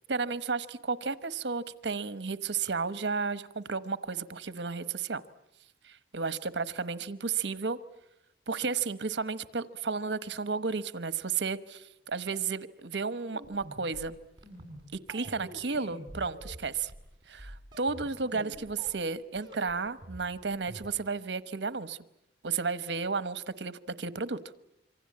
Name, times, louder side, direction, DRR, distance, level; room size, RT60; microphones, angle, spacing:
voice 1, 0.1-5.2 5.8-7.8 8.5-14.1 14.9-16.9 17.3-22.0 22.4-24.4, right 4 dB, 75° right, 14 dB, 1.1 m, -33 dB
sound 1, 13.3-19.0 19.3-21.2, right 1 dB, 25° right, 7.3 m, -47 dB
27.0 x 24.5 x 8.6 m, 0.81 s
head